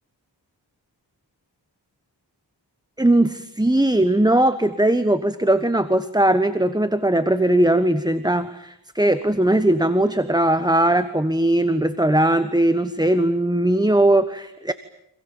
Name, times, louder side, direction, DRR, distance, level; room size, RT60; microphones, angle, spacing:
voice 1, 3.0-14.7, right 1 dB, 10° right, 12 dB, 1.3 m, -19 dB
29.5 x 27.0 x 7.2 m, 0.79 s
wide cardioid pair, 70°, 45 cm